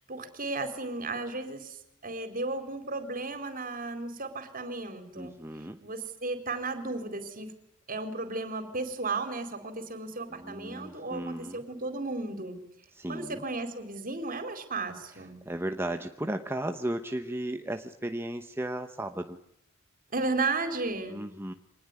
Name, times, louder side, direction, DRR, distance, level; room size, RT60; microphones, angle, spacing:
voice 1, 0.1-5.4 5.8-7.5 7.9-12.6 13.1-15.4 20.1-21.2, right 3 dB, 45° right, 8 dB, 4.3 m, -34 dB
voice 2, 5.2-5.8 10.3-11.6 12.9-13.4 15.4-19.4 21.1-21.5, right 1 dB, 10° right, 6 dB, 1.0 m, -35 dB
25.0 x 20.0 x 9.7 m, 0.76 s
head